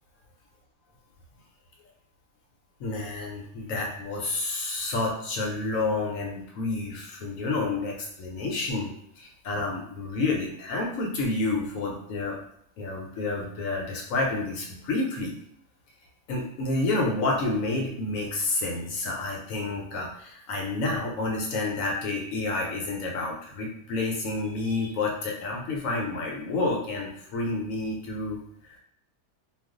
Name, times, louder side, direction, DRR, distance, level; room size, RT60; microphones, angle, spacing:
voice 1, 2.8-12.4 12.8-15.3 16.3-28.4 28.6-28.8, left 2 dB, 70° left, -1 dB, 0.9 m, -29 dB
2.4 x 2.3 x 3.6 m, 0.68 s
omnidirectional pair, 1.6 m